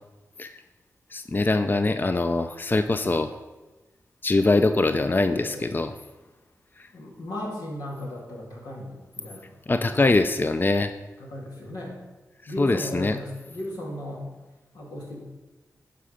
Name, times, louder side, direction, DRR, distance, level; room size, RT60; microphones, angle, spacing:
voice 1, 1.1-3.3 4.2-6.0 6.8-6.9 9.7-10.9 12.4-13.2, left 2 dB, 30° left, 9 dB, 0.5 m, -23 dB
voice 2, 5.2-5.8 6.9-9.5 9.8-10.0 11.2-11.9 12.5-14.3 14.7-15.2, left 1 dB, 85° left, -3 dB, 2.3 m, -36 dB
11.0 x 5.2 x 5.1 m, 1.2 s
cardioid pair, 40°, 6 cm